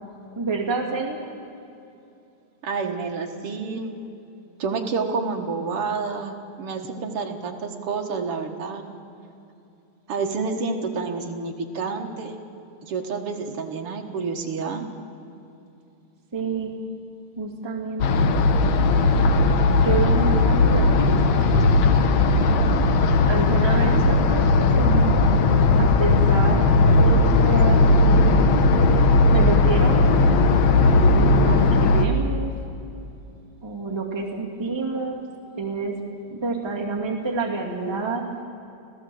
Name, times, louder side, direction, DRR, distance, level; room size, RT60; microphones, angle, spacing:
voice 1, 0.4-1.2 16.3-16.8 17.4-18.3 19.8-22.2 23.3-25.2 25.8-28.5 29.3-30.0 30.8-32.5 33.6-35.2 35.6-36.0 36.3-38.3, right 4 dB, 10° right, -1 dB, 1.9 m, -28 dB
voice 2, 2.6-3.9 4.6-8.8 10.1-12.4 12.8-14.9, right 4 dB, 55° right, 4 dB, 2.2 m, -29 dB
sound 1, 18.0-32.1, left 3 dB, 70° left, 2.2 m, -17 dB
26.0 x 16.0 x 7.8 m, 2.7 s
omnidirectional pair, 3.4 m